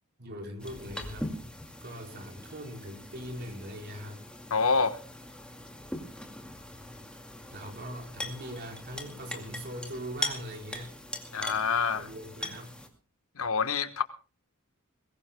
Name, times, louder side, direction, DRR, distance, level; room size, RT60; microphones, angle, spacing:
voice 1, 0.2-1.4 1.8-4.2 7.4-11.0 11.9-12.8, equal, 50° right, 4.6 m, -41 dB
sound 1, 0.6-12.9, left 1 dB, 5° left, 2.2 m, -41 dB
voice 2, 4.5-5.0 11.3-12.1 13.4-14.0, left 5 dB, 75° left, 1.3 m, -27 dB
22.0 x 20.0 x 2.3 m
head